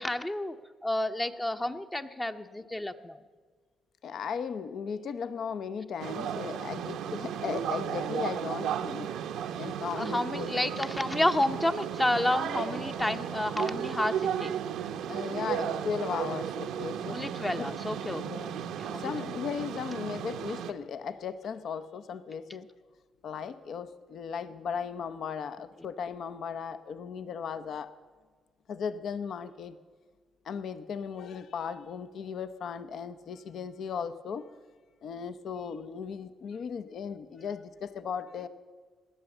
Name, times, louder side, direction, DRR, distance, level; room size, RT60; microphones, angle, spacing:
voice 1, 0.0-3.2 9.9-14.5 17.1-18.2 18.8-19.1, left 1 dB, 15° left, 8 dB, 0.7 m, -30 dB
voice 2, 4.0-9.2 9.6-10.5 15.1-17.2 17.6-17.7 18.1-18.6 18.9-22.7 23.2-27.9 28.7-29.8 30.4-34.4 35.0-38.5, left 6 dB, 65° left, 13 dB, 0.7 m, -36 dB
sound 1, 6.0-20.7, right 9 dB, 85° right, 0.7 m, -34 dB
19.5 x 7.8 x 7.1 m, 1.5 s
cardioid pair, 90°, 0 cm